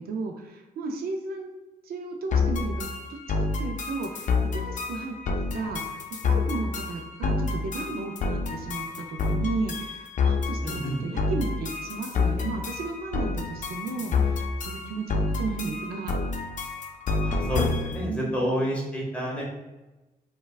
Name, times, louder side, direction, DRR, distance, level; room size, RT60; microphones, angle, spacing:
voice 1, 0.0-1.5 1.8-2.9 3.4-16.2 18.0-18.7, right 3 dB, 80° right, 3 dB, 0.4 m, -34 dB
sound 1, 2.3-18.0, left 4 dB, 55° left, 0.4 m, -28 dB
voice 2, 10.6-11.0 17.2-19.4, equal, 10° left, -4 dB, 1.0 m, -29 dB
3.2 x 2.1 x 2.3 m, 1.0 s
cardioid pair, 85°, 16 cm